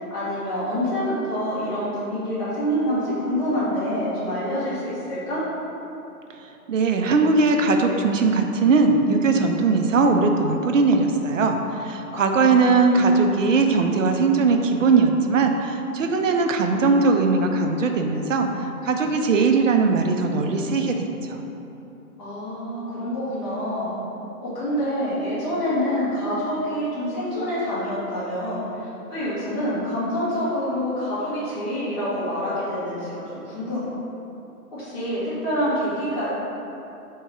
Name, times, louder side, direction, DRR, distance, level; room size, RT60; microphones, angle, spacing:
voice 1, 0.1-5.4 12.1-12.8 22.2-23.9 24.4-33.9 34.7-36.3, equal, 15° left, -12 dB, 1.1 m, -27 dB
voice 2, 6.4-21.4, right 4 dB, 55° right, 4 dB, 0.5 m, -20 dB
3.6 x 2.9 x 4.6 m, 2.9 s
hypercardioid pair, 155°, 45 cm